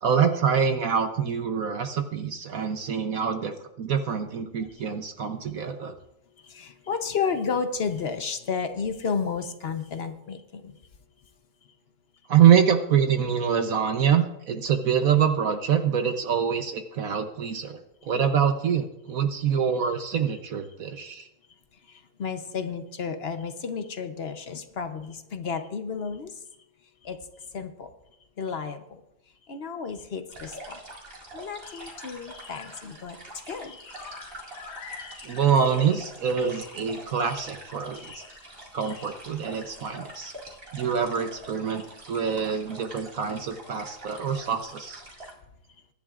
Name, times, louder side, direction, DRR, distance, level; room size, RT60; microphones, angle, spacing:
voice 1, 0.0-5.9 12.3-21.3 35.2-38.2 38.7-40.3 40.7-45.0, right 7 dB, 60° right, 7 dB, 1.1 m, -25 dB
voice 2, 6.4-10.8 18.0-18.1 21.9-26.4 27.0-27.9 28.4-29.0 29.5-30.8 31.3-33.2 33.4-33.8, left 5 dB, 50° left, 8 dB, 0.9 m, -32 dB
sound 1, 30.3-45.3, right 1 dB, 35° right, 2.3 m, -45 dB
sound 2, 31.6-33.1 33.4-39.9 40.4-40.6, left 5 dB, 80° left, 1.8 m, -47 dB
23.0 x 10.5 x 2.5 m, 0.84 s
omnidirectional pair, 1.8 m